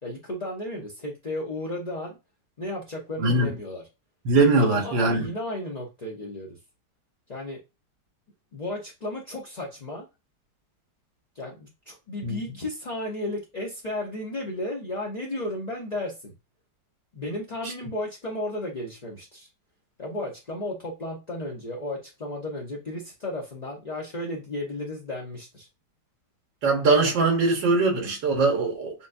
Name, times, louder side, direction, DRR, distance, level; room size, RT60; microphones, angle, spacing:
voice 1, 0.0-2.2 2.6-3.8 4.6-6.5 7.3-7.6 8.5-10.0 11.3-16.3 17.1-19.5 20.0-25.7, left 1 dB, 35° left, 0.6 m, -34 dB
voice 2, 3.2-3.5 4.3-5.3 12.2-12.4 26.6-28.9, right 3 dB, 85° right, 1.9 m, -21 dB
7.0 x 2.5 x 2.6 m
omnidirectional pair, 2.0 m